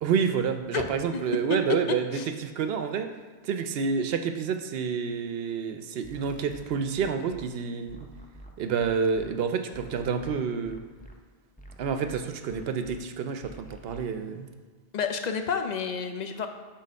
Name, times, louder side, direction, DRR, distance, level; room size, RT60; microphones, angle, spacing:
voice 1, 0.0-3.1 3.4-8.0 8.6-10.8 11.8-14.5, right 6 dB, 75° right, 8 dB, 0.8 m, -29 dB
voice 2, 0.7-1.6 1.9-2.3 14.9-16.5, left 5 dB, 50° left, 6 dB, 0.6 m, -30 dB
sound 1, 6.0-7.5 7.9-9.3 9.7-11.1 11.6-13.0 13.4-14.0, right 1 dB, 15° left, 0.3 m, -47 dB
6.4 x 3.9 x 5.2 m, 1.5 s
omnidirectional pair, 1.0 m